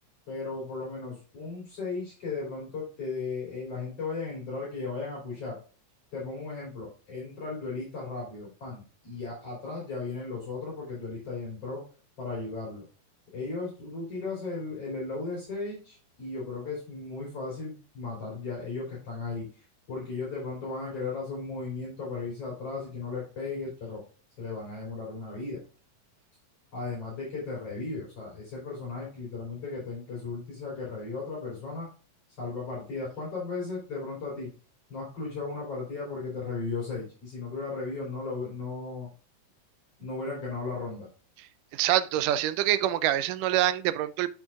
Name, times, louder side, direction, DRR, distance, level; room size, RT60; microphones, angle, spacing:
voice 1, 0.3-5.6 6.1-11.8 12.2-12.8 13.3-24.0 24.4-25.6 26.7-31.9 32.4-34.5 34.9-39.1 40.0-41.1, left 3 dB, 50° left, 4.0 m, -36 dB
voice 2, 41.7-44.3, right 13 dB, 90° right, 2.2 m, -25 dB
8.8 x 7.0 x 2.4 m
omnidirectional pair, 3.7 m